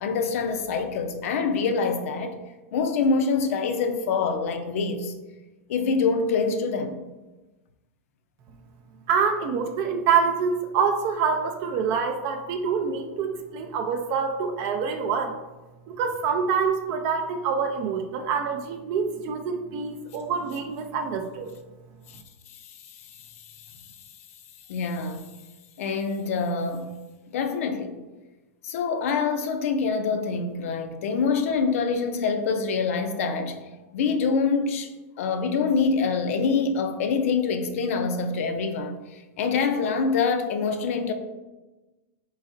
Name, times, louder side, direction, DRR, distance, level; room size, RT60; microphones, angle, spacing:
voice 1, 0.0-2.3 2.7-5.1 5.7-7.0 22.1-22.2 22.5-23.9 24.7-25.3 25.8-26.9 27.3-27.9 28.6-33.6 33.9-34.9 35.2-41.1, left 5 dB, 65° left, 6 dB, 0.6 m, -25 dB
voice 2, 9.1-15.4 15.9-21.5, right 6 dB, 40° right, 5 dB, 0.4 m, -26 dB
4.1 x 3.9 x 2.6 m, 1.1 s
supercardioid pair, 150°, 8 cm